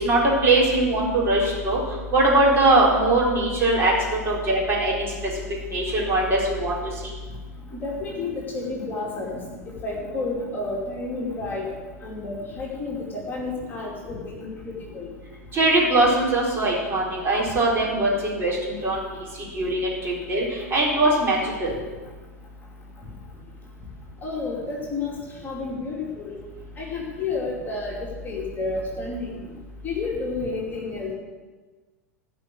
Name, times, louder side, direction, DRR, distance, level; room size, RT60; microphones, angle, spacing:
voice 1, 0.0-1.8 2.1-5.1 5.7-6.8 15.5-19.1 19.5-21.8, right 2 dB, 25° right, -4 dB, 3.9 m, -21 dB
voice 2, 7.7-9.4 9.8-11.7 12.0-15.1 24.2-26.4 26.8-29.4 29.8-31.1, left 3 dB, 20° left, -3 dB, 2.6 m, -31 dB
16.0 x 5.3 x 7.8 m, 1.3 s
figure-of-eight pair, 95°, 9 cm